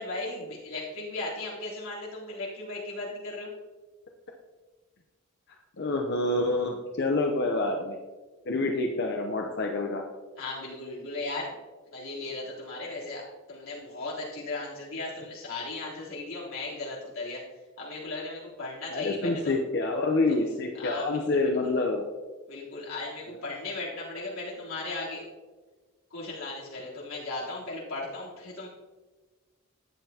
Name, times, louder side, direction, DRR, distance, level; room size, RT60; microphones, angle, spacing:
voice 1, 0.0-3.5 10.4-11.5 11.9-17.4 17.8-19.5 20.3-20.4 20.8-21.7 22.5-25.2 26.1-28.7, left 2 dB, 75° left, -6 dB, 3.6 m, -36 dB
voice 2, 5.8-8.0 8.5-10.0 18.9-22.1, left 2 dB, 55° left, 2 dB, 0.9 m, -27 dB
13.5 x 9.1 x 2.9 m, 1.3 s
head